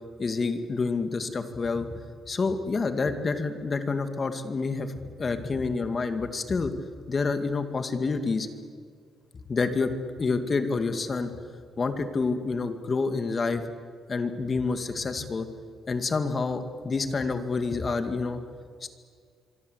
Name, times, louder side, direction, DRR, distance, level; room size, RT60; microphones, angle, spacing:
voice 1, 0.2-6.7 7.1-8.5 9.5-9.9 10.2-11.3 11.8-13.6 14.1-15.5 15.9-18.4 18.8-18.9, left 4 dB, 35° left, 8 dB, 2.3 m, -28 dB
26.0 x 24.5 x 8.3 m, 2.1 s
cardioid pair, 90°, 0 cm